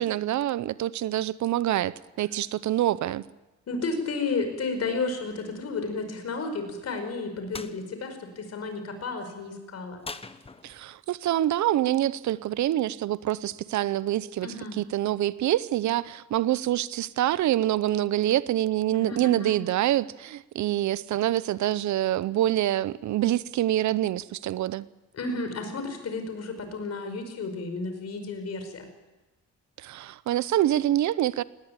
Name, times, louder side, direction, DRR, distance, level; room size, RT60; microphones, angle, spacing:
voice 1, 0.0-3.2 10.6-24.9 29.8-31.4, right 13 dB, 70° right, 0.8 m, -26 dB
voice 2, 3.7-10.0 14.4-14.8 18.9-19.6 25.1-28.9, left 3 dB, 55° left, 4.8 m, -32 dB
sound 1, 7.5-7.8 10.0-11.0, left 3 dB, 20° left, 1.1 m, -40 dB
19.0 x 18.0 x 9.1 m
cardioid pair, 90°, 30 cm